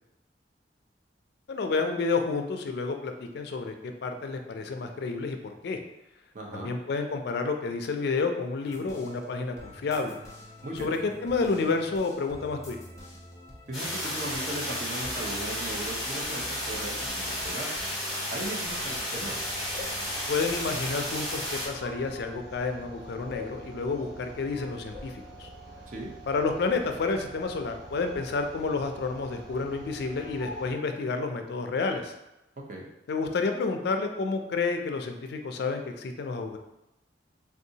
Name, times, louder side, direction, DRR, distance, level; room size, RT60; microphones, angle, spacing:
voice 1, 1.5-5.4 5.6-5.8 6.5-10.2 10.8-12.8 20.3-25.5 26.3-32.1 33.1-36.6, left 4 dB, 60° left, 5 dB, 0.4 m, -30 dB
voice 2, 6.3-6.7 10.6-10.9 13.7-17.7 18.2-19.4 25.9-26.1 32.7-32.9, right 1 dB, 45° right, -1 dB, 0.6 m, -37 dB
sound 1, 8.6-20.9, left 1 dB, 15° left, 0.7 m, -47 dB
sound 2, 13.7-21.7, left 1 dB, ahead, 1.0 m, -33 dB
sound 3, 19.1-30.7, equal, 90° right, 0.7 m, -45 dB
3.5 x 2.6 x 2.7 m, 0.91 s
head